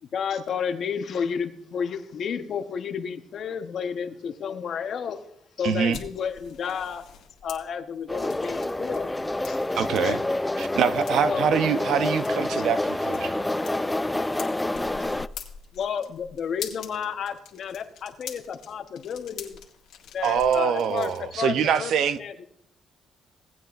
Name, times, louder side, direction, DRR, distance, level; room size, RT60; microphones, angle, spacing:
voice 1, 0.0-5.2 5.6-7.0 7.4-9.1 9.5-10.3 11.3-11.4 15.7-19.6 20.1-22.4, left 7 dB, 65° left, 1.0 m, -31 dB
voice 2, 5.6-6.0 9.8-10.2 10.6-13.3 20.2-22.2, right 8 dB, 75° right, 0.7 m, -24 dB
sound 1, 5.7-21.2, left 8 dB, 85° left, 2.0 m, -45 dB
sound 2, 8.1-15.3, left 1 dB, 10° left, 0.4 m, -27 dB
voice 3, 12.9-14.4, equal, 30° right, 2.7 m, -52 dB
18.0 x 9.0 x 2.5 m
cardioid pair, 90°, 0 cm